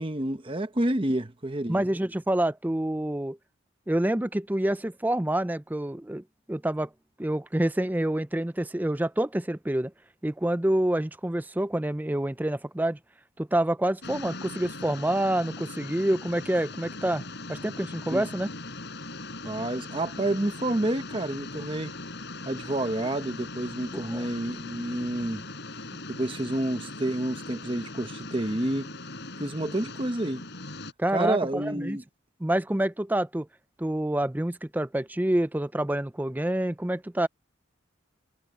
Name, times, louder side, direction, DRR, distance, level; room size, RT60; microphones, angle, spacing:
voice 1, 0.0-1.8 18.1-18.2 19.4-21.9 22.4-25.4 26.1-28.9 29.4-30.4 31.1-32.0, right 1 dB, 25° right, 1.0 m, -29 dB
voice 2, 1.7-3.4 3.9-6.2 6.5-6.9 7.2-9.9 10.2-13.0 13.4-17.2 17.5-18.5 23.9-24.2 31.0-32.0 32.4-33.5 33.8-37.3, right 1 dB, 10° right, 0.5 m, -27 dB
sound 1, 14.0-30.9, left 2 dB, 55° left, 7.7 m, -40 dB
head